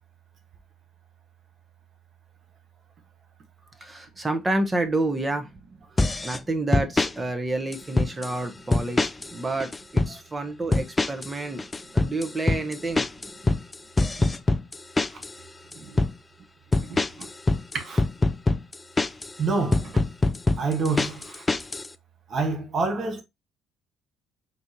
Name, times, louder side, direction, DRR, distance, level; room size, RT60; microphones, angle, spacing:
voice 1, 3.8-5.5 6.2-11.6 11.9-13.0, right 2 dB, 20° right, 0.9 m, -29 dB
sound 1, 6.0-6.4 6.7-7.1 7.7-8.3 8.7-9.3 9.6-10.1 10.7-11.3 11.6-15.3 15.7-16.1 16.7-19.3 19.7-21.9, left 2 dB, 20° left, 0.3 m, -23 dB
voice 2, 16.9-17.3 17.7-18.0 19.4-20.0 20.6-21.5 22.3-23.2, right 3 dB, 50° right, 1.3 m, -28 dB
4.1 x 3.5 x 2.8 m
hypercardioid pair, 50°, 0 cm